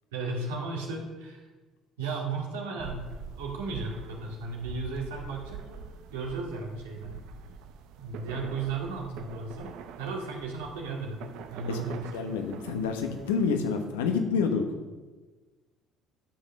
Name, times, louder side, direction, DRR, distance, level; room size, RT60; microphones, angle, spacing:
voice 1, 0.1-1.5 2.0-3.0 3.4-5.8 6.1-7.1 8.0-9.7 10.0-11.2 11.5-12.3, right 3 dB, 90° right, -1 dB, 2.2 m, -35 dB
sound 1, 2.8-13.9, right 7 dB, 70° right, 0.7 m, -45 dB
voice 2, 12.1-14.6, left 5 dB, 90° left, 5 dB, 1.1 m, -28 dB
10.0 x 6.2 x 6.6 m, 1.3 s
hypercardioid pair, 65°, 0 cm